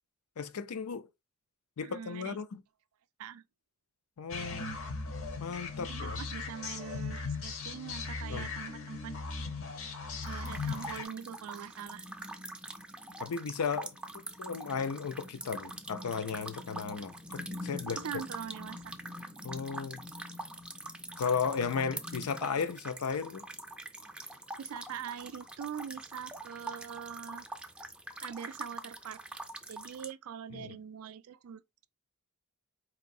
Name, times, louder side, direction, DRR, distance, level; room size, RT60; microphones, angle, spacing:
voice 1, 0.4-1.1 1.8-2.6 4.2-4.7 5.4-6.2 8.3-8.5 13.2-14.0 14.4-18.0 19.4-20.0 21.2-23.5 30.5-30.8, left 6 dB, 85° left, 0.5 m, -35 dB
voice 2, 1.8-2.4 3.2-3.4 5.9-9.1 9.4-9.5 10.3-12.1 18.0-18.9 24.6-27.4 28.2-29.2 29.7-31.9, right 8 dB, 75° right, 0.4 m, -43 dB
sound 1, 4.3-11.0, left 4 dB, 65° left, 0.8 m, -38 dB
sound 2, 10.2-30.1, right 1 dB, 5° right, 0.4 m, -44 dB
4.6 x 3.0 x 2.6 m
head